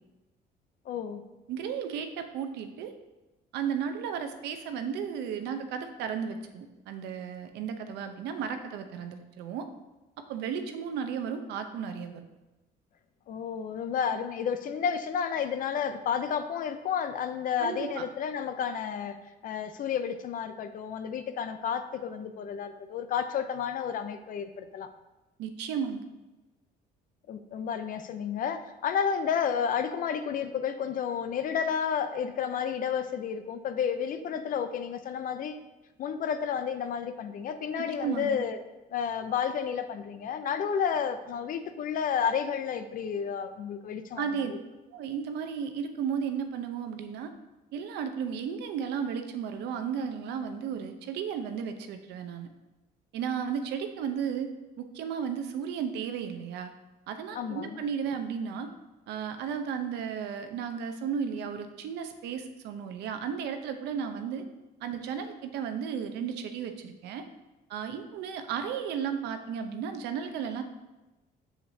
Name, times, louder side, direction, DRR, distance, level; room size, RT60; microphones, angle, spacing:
voice 1, 0.9-1.2 13.3-19.2 19.4-24.9 27.3-35.6 36.0-38.6 38.9-44.6 57.3-57.8, left 7 dB, 55° left, 10 dB, 0.6 m, -31 dB
voice 2, 1.5-2.9 3.5-9.7 10.3-12.2 17.6-18.0 25.4-26.0 37.8-38.4 44.2-44.5 44.9-47.3 47.7-52.5 53.1-54.5 54.8-56.7 57.1-58.7 59.1-64.4 64.8-67.2 67.7-70.6, right 7 dB, 85° right, 7 dB, 0.8 m, -34 dB
7.4 x 7.0 x 2.8 m, 1.1 s
cardioid pair, 110°, 17 cm